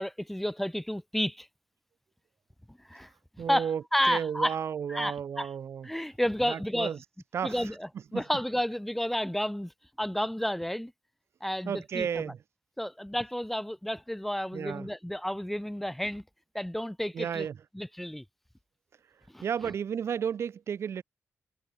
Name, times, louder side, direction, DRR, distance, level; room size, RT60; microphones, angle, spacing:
voice 1, 0.0-1.5 2.7-3.1 3.5-4.5 4.9-5.5 5.8-6.9 7.4-9.7 10.0-10.9 11.4-12.3 12.8-16.2 16.5-17.5 17.7-18.2 19.3-19.4, equal, 5° left, 2.3 m, -31 dB
voice 2, 3.4-5.9 6.5-7.0 7.3-7.7 8.1-8.2 11.6-12.4 14.5-14.9 17.1-17.6 19.4-21.0, right 7 dB, 65° right, 3.1 m, -33 dB
cardioid pair, 110°, 5 cm